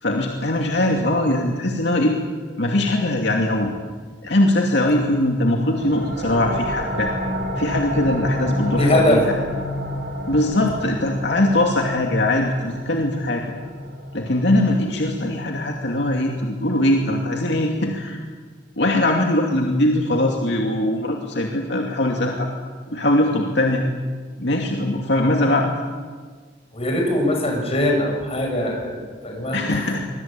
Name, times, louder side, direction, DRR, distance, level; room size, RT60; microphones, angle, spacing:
voice 1, 0.0-2.2 2.6-3.7 4.2-7.1 7.6-9.4 10.3-13.4 14.1-18.2 18.8-22.5 22.9-23.8 24.4-25.7 29.5-30.0, left 1 dB, 70° left, 1 dB, 2.6 m, -21 dB
sound 1, 5.8-17.2, equal, 65° right, 4.2 m, -30 dB
voice 2, 8.8-9.3 26.7-29.8, left 1 dB, 35° left, 2 dB, 6.9 m, -21 dB
25.5 x 21.5 x 9.0 m, 1.5 s
head